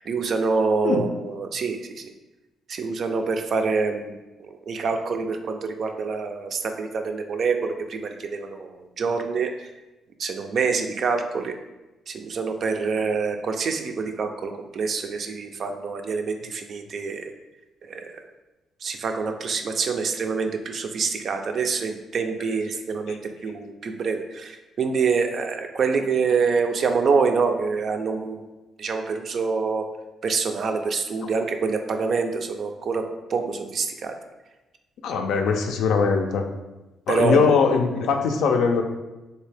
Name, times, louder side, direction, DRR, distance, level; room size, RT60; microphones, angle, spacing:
voice 1, 0.0-2.1 2.7-9.5 10.2-11.5 12.1-17.3 17.9-18.1 18.8-28.5 28.8-29.8 30.2-33.0 33.3-34.1 37.1-37.5, right 5 dB, 55° right, 5 dB, 0.4 m, -26 dB
voice 2, 35.0-36.4 37.1-38.8, left 5 dB, 80° left, 5 dB, 0.4 m, -21 dB
3.2 x 2.7 x 3.3 m, 1.1 s
cardioid pair, 90°, 0 cm